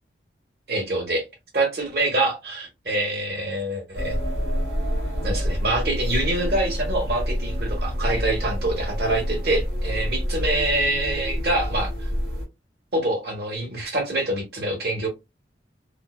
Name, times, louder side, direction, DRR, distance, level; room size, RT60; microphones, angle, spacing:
voice 1, 0.7-1.2 1.5-4.2 5.2-11.9 12.9-15.1, right 2 dB, 55° right, 1.1 m, -25 dB
sound 1, 3.9-12.4, equal, 85° right, 1.3 m, -27 dB
2.6 x 2.1 x 2.3 m
head